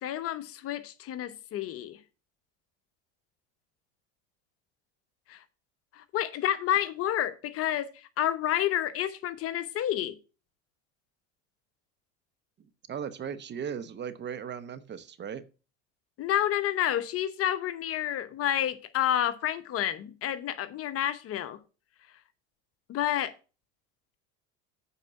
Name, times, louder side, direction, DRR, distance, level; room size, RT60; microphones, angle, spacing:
voice 1, 0.0-2.0 5.3-5.4 5.9-10.1 16.2-21.6 22.9-23.3, left 11 dB, 45° left, 0.9 m, -29 dB
voice 2, 12.6-15.4, right 7 dB, 30° right, 0.9 m, -37 dB
8.3 x 4.6 x 6.7 m
hypercardioid pair, 85°, 34 cm